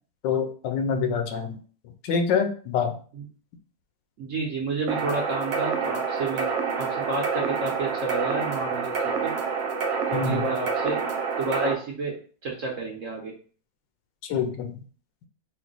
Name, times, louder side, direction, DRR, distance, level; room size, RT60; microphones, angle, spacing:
voice 1, 0.2-1.6 1.8-3.0 10.1-10.5 14.2-14.8, left 6 dB, 75° left, 6 dB, 1.2 m, -26 dB
voice 2, 4.2-6.5 6.8-9.3 10.1-11.0 11.4-12.1 12.4-13.3, right 3 dB, 60° right, -1 dB, 0.9 m, -30 dB
sound 1, 4.9-11.7, right 5 dB, 80° right, 1.3 m, -28 dB
4.4 x 2.1 x 3.8 m, 0.42 s
omnidirectional pair, 2.0 m